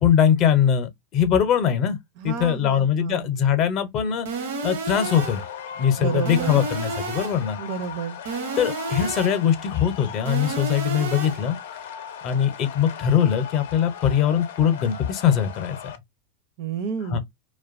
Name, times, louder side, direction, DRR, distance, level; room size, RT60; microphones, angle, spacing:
voice 1, 0.0-2.0 2.2-4.3 4.6-5.4 5.8-7.6 8.6-11.6 12.2-15.8 17.1-17.2, left 8 dB, 40° left, 0.6 m, -21 dB
voice 2, 2.2-3.3 6.0-6.6 7.6-8.2 16.6-17.2, right 7 dB, 55° right, 0.5 m, -30 dB
sound 1, 4.3-5.5 6.3-7.5 8.3-9.5 10.3-11.5, right 4 dB, 80° right, 0.8 m, -31 dB
sound 2, 4.9-16.0, left 8 dB, 80° left, 0.5 m, -38 dB
2.5 x 2.2 x 2.4 m
supercardioid pair, 140°, 0 cm